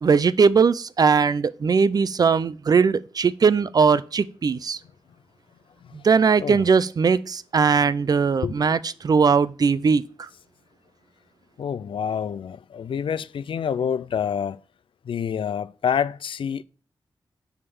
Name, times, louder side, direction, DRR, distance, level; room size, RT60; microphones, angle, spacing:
voice 1, 0.0-4.8 5.9-10.3, right 5 dB, 50° right, 0.4 m, -20 dB
voice 2, 11.6-14.6 15.1-16.6, left 7 dB, 90° left, 0.4 m, -27 dB
10.0 x 3.7 x 7.0 m
wide cardioid pair, 150°, 9 cm